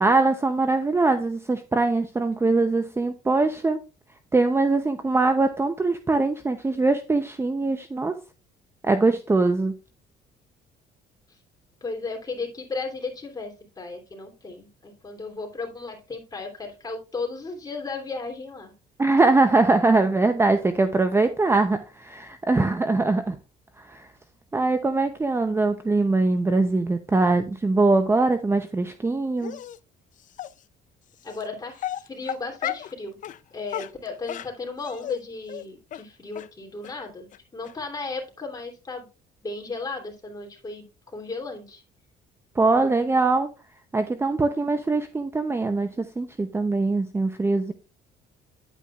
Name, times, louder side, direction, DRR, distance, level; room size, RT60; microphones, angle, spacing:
voice 1, 0.0-3.8 4.3-8.2 8.8-9.7 19.0-23.4 23.8-24.1 24.5-29.6 42.6-43.5 43.9-47.7, right 3 dB, 15° right, 0.6 m, -22 dB
voice 2, 11.8-18.7 31.2-33.2 33.5-39.1 39.4-40.9 41.1-41.8, left 3 dB, 20° left, 3.1 m, -35 dB
Dog, 29.4-29.8 30.4-30.5 31.3-31.4 31.8-32.9 33.2-33.4 33.7-35.2 35.5-35.6 35.9-36.0 36.4-36.5 36.8-36.9 37.3-37.4 37.6-37.7, left 11 dB, 50° left, 0.5 m, -33 dB
10.0 x 8.4 x 2.4 m
cardioid pair, 110°, 17 cm